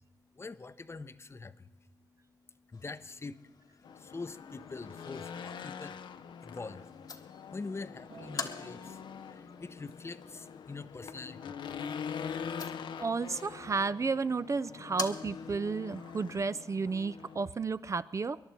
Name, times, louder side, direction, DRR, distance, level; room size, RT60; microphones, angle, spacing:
voice 1, 0.3-1.7 2.7-6.0 6.4-6.9 7.5-11.6, left 3 dB, 35° left, 13 dB, 0.7 m, -44 dB
sound 1, 2.7-15.7, left 4 dB, 55° left, 1.2 m, -47 dB
Race car auto racing / Engine, 3.8-17.5, left 7 dB, 85° left, 0.6 m, -44 dB
Acoustic guitar, 8.1-12.4 13.2-13.3, right 2 dB, 85° right, 2.0 m, -57 dB
voice 2, 13.0-18.4, right 4 dB, 40° right, 15 dB, 0.5 m, -32 dB
22.0 x 11.0 x 4.5 m, 1.1 s
cardioid pair, 70°, 8 cm